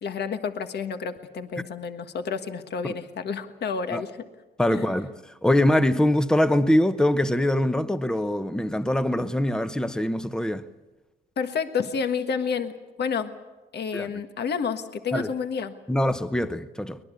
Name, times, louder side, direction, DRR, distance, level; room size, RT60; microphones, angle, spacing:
voice 1, 0.0-4.1 4.7-4.8 11.4-12.7 13.0-13.3 13.7-15.7, left 6 dB, 55° left, 1.6 m, -29 dB
voice 2, 4.6-10.7 13.9-14.1 15.1-15.3 15.9-17.0, left 1 dB, 5° left, 1.0 m, -23 dB
23.0 x 20.0 x 8.4 m
cardioid pair, 90°, 20 cm